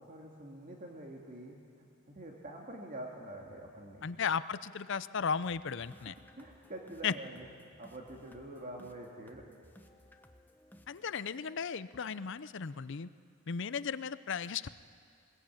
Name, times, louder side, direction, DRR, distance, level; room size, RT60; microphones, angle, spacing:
voice 1, 0.0-1.6 2.1-4.1 6.0-9.5, right 1 dB, 40° right, -1 dB, 2.0 m, -46 dB
voice 2, 4.0-6.1 7.0-7.1 10.9-13.1 13.5-14.7, left 6 dB, 55° left, 15 dB, 0.6 m, -35 dB
sound 1, 5.4-13.4, equal, 10° left, 1.0 m, -61 dB
21.0 x 21.0 x 8.8 m, 2.3 s
head